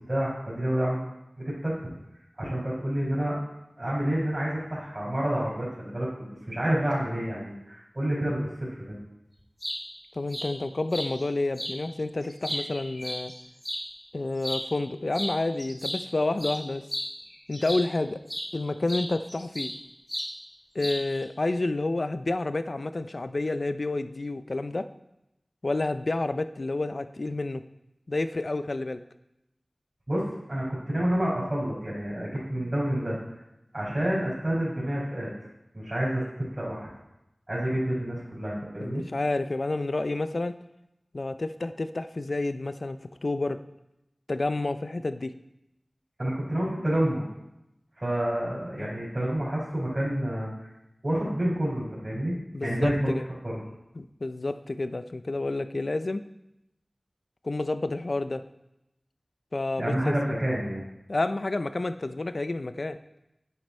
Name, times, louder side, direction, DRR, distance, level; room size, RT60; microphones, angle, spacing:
voice 1, 0.1-1.0 1.4-1.7 2.4-3.4 3.8-9.0 30.1-33.4 33.7-35.3 35.7-36.2 36.5-36.8 37.5-39.0 46.2-47.3 48.0-50.5 51.0-52.3 52.6-53.1 53.4-53.6 59.8-60.8, right 1 dB, 40° right, -9 dB, 4.9 m, -28 dB
sound 1, 9.4-9.8 10.3-10.5 10.9-11.1 11.5-11.7 12.2-13.8 14.4-14.6 15.1-15.3 15.6-17.9 18.3-18.5 18.9-19.8 20.1-20.3 20.8-21.2, equal, 15° left, 2.7 m, -34 dB
voice 2, 10.1-13.3 14.1-16.8 17.5-18.2 18.5-19.7 20.7-24.9 25.6-27.6 28.1-29.0 32.6-32.7 38.8-40.5 41.1-43.6 44.3-45.3 48.8-48.9 52.5-53.2 54.0-56.2 57.4-58.4 59.5-60.1 61.1-63.0, left 2 dB, 65° left, 11 dB, 0.6 m, -29 dB
10.5 x 9.4 x 4.4 m, 0.89 s
wide cardioid pair, 45°, 0 cm